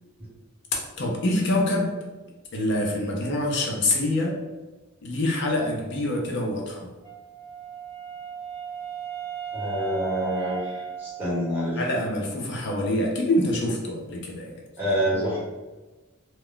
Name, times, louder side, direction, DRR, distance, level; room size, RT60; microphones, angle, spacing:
voice 1, 0.7-1.9 2.5-4.4 5.0-6.9 11.8-14.6, left 1 dB, 55° left, -1 dB, 0.6 m, -25 dB
Wind instrument woodwind instrument, 7.0-11.8, right 8 dB, 15° left, 0.8 m, -36 dB
voice 2, 9.5-11.8 14.8-15.4, equal, 10° right, -9 dB, 1.1 m, -27 dB
2.3 x 2.1 x 3.7 m, 1.2 s
head